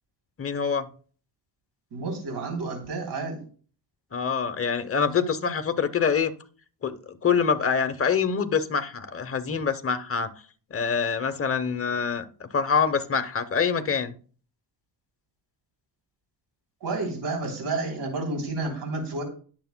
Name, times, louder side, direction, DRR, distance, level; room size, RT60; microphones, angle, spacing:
voice 1, 0.4-0.9 4.1-6.3 6.8-10.3 10.7-14.1, left 6 dB, 30° left, 10 dB, 0.8 m, -25 dB
voice 2, 1.9-3.4 16.8-19.2, right 3 dB, 60° right, 1 dB, 3.4 m, -30 dB
20.5 x 7.0 x 2.2 m, 0.41 s
wide cardioid pair, 160°, 45 cm